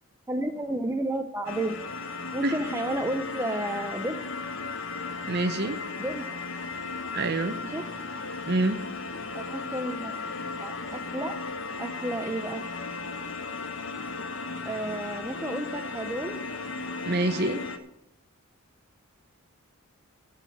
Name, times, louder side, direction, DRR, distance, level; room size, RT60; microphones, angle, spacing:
voice 1, 0.3-1.8 2.3-4.2 6.0-6.3 7.6-7.9 9.3-10.1 10.6-11.4 11.8-12.6 14.6-16.4, right 1 dB, 10° right, 5 dB, 0.5 m, -32 dB
sound 1, 1.5-17.8, left 4 dB, 60° left, 0.9 m, -36 dB
voice 2, 5.3-5.8 7.1-7.6 8.5-8.8 17.0-17.6, right 2 dB, 45° right, 10 dB, 0.8 m, -26 dB
14.5 x 5.7 x 7.7 m, 0.89 s
head